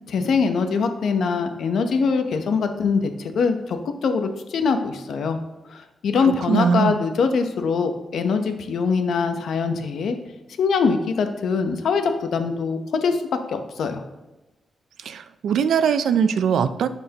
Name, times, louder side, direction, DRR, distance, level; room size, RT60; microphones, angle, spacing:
voice 1, 0.1-5.4 5.7-10.2 10.6-13.2 13.5-14.0, left 5 dB, 80° left, 7 dB, 0.8 m, -23 dB
voice 2, 6.5-7.0 15.1-16.9, right 7 dB, 85° right, 12 dB, 0.4 m, -21 dB
11.5 x 4.5 x 2.9 m, 1.0 s
cardioid pair, 90°, 0 cm